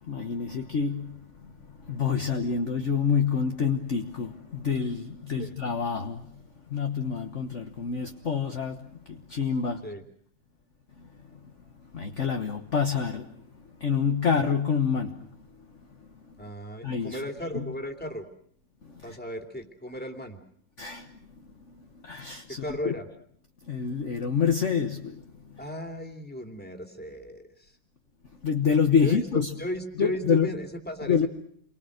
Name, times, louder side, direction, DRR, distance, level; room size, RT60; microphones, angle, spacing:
voice 1, 0.0-6.3 6.7-8.8 9.1-9.9 11.0-11.4 11.8-13.3 13.8-15.3 16.8-17.2 17.5-17.7 18.8-19.2 20.8-21.4 21.7-22.9 23.7-25.6 28.4-29.5 30.0-30.5 31.1-31.3, left 6 dB, 45° left, 1.5 m, -27 dB
voice 2, 16.4-18.3 19.0-20.4 22.6-23.1 25.6-27.8 29.0-29.2 29.6-31.3, equal, 5° left, 2.9 m, -36 dB
29.5 x 23.5 x 6.5 m
omnidirectional pair, 2.0 m